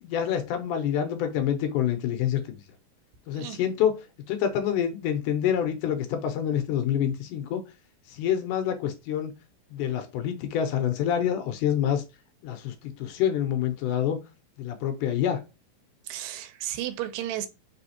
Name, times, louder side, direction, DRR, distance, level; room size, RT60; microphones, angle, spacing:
voice 1, 0.0-2.6 3.3-7.6 8.1-9.3 9.7-12.0 12.4-14.2 14.6-15.4, left 9 dB, 80° left, 2.1 m, -27 dB
voice 2, 16.0-17.5, right 12 dB, 85° right, 2.3 m, -33 dB
4.8 x 3.5 x 2.7 m
omnidirectional pair, 3.9 m